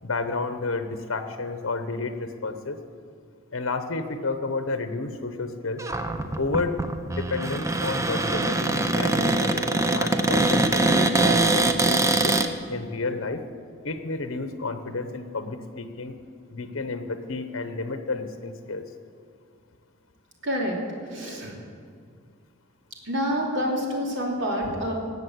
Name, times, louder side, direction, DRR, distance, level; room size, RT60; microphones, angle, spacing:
voice 1, 0.0-2.8 3.5-5.8 6.4-6.8 7.1-11.7 12.0-12.4 12.7-13.4 13.8-16.2 16.5-18.8, left 3 dB, 70° left, 8 dB, 1.0 m, -31 dB
Cupboard open or close, 5.8-12.5, right 2 dB, 15° right, 0.6 m, -23 dB
voice 2, 20.4-20.8 21.1-21.5 23.0-24.9, equal, 60° right, -1 dB, 3.0 m, -27 dB
19.0 x 7.5 x 7.8 m, 2.2 s
head